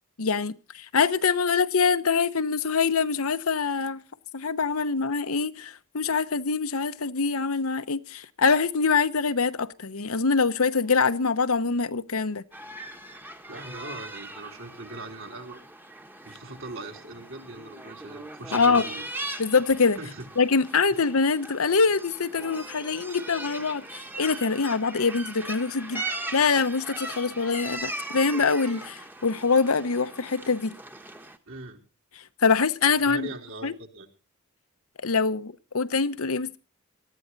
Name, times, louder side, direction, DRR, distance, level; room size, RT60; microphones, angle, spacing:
voice 1, 0.2-4.0 4.3-12.4 18.5-18.8 19.4-20.0 20.4-26.0 26.3-30.7 32.4-33.3 33.6-33.7 35.0-36.6, left 5 dB, 75° left, 0.9 m, -24 dB
sound 1, 12.5-31.4, right 2 dB, 10° right, 1.1 m, -39 dB
voice 2, 13.5-15.6 16.2-19.1 20.0-20.3 31.5-31.8 33.0-34.1, right 2 dB, 60° right, 3.4 m, -40 dB
19.0 x 14.0 x 4.0 m
head